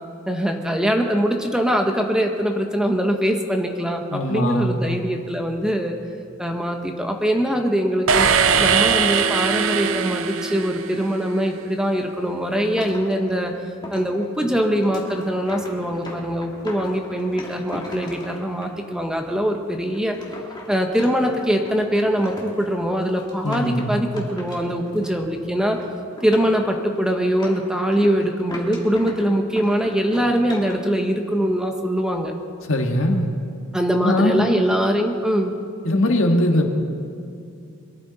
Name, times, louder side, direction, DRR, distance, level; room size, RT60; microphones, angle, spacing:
voice 1, 0.3-6.0 6.4-8.3 8.6-13.5 13.9-20.2 20.7-25.9 26.2-32.3 33.7-35.6, equal, 5° right, 3 dB, 1.0 m, -22 dB
voice 2, 4.1-4.7 23.4-24.0 32.7-33.2 34.0-34.5 35.8-36.7, left 1 dB, 65° left, 2 dB, 1.6 m, -20 dB
sound 1, 8.1-11.2, right 6 dB, 65° right, 0.7 m, -20 dB
sound 2, 12.7-18.7 19.3-19.4 19.8-25.3 25.6-25.9 26.2-29.2 29.6-30.7, left 1 dB, 20° left, 2.4 m, -39 dB
23.0 x 13.5 x 4.0 m, 2.5 s
head